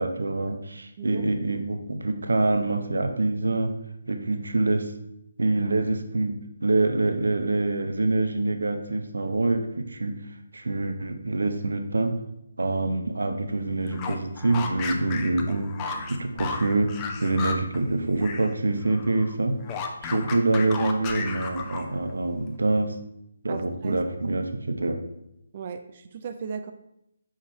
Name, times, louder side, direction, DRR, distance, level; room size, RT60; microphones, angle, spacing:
voice 1, 0.0-3.7 4.1-4.9 5.4-10.2 10.5-12.1 12.6-15.7 16.1-16.9 17.2-19.6 20.0-22.9 23.4-25.0, right 2 dB, 70° right, 7 dB, 0.8 m, -25 dB
sound 1, 13.8-18.5 18.8-22.1, left 5 dB, 20° left, 0.6 m, -34 dB
voice 2, 23.5-24.0 25.5-26.7, right 6 dB, 40° right, 8 dB, 0.4 m, -36 dB
5.5 x 4.9 x 4.2 m, 0.82 s
figure-of-eight pair, 145°, 0 cm